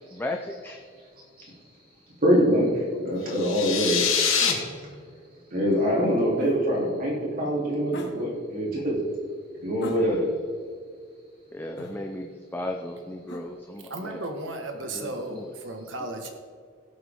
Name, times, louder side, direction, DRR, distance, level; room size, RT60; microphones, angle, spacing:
voice 1, 0.1-0.8 10.0-10.1 11.5-14.2 14.9-15.5, left 1 dB, 10° left, 3 dB, 0.6 m, -35 dB
voice 2, 2.2-4.0 5.5-9.0 9.6-10.2, equal, 45° right, -5 dB, 3.3 m, -24 dB
sound 1, 3.3-4.5, left 7 dB, 85° left, 1.7 m, -24 dB
sound 2, 4.4-4.7 6.4-6.6 7.9-8.2 9.8-10.4 11.8-12.0 13.3-13.5, left 1 dB, 60° left, 1.8 m, -38 dB
voice 3, 13.9-16.3, right 2 dB, 65° right, 4 dB, 1.6 m, -34 dB
17.0 x 7.9 x 3.7 m, 2.1 s
head